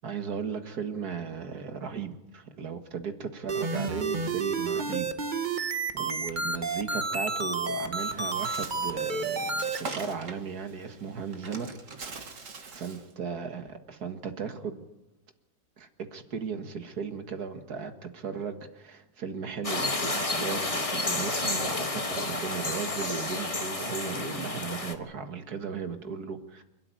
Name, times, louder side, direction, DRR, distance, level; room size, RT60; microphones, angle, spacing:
voice 1, 0.0-5.1 5.4-11.8 12.7-14.9 15.8-26.6, right 6 dB, 65° right, 7 dB, 2.2 m, -36 dB
sound 1, 3.5-9.8, right 4 dB, 30° right, 1.2 m, -30 dB
Bird, 8.0-13.1, right 3 dB, 50° right, 2.0 m, -43 dB
sound 2, 19.6-24.9, left 2 dB, 20° left, 1.5 m, -31 dB
28.0 x 13.0 x 9.2 m, 0.96 s
omnidirectional pair, 1.8 m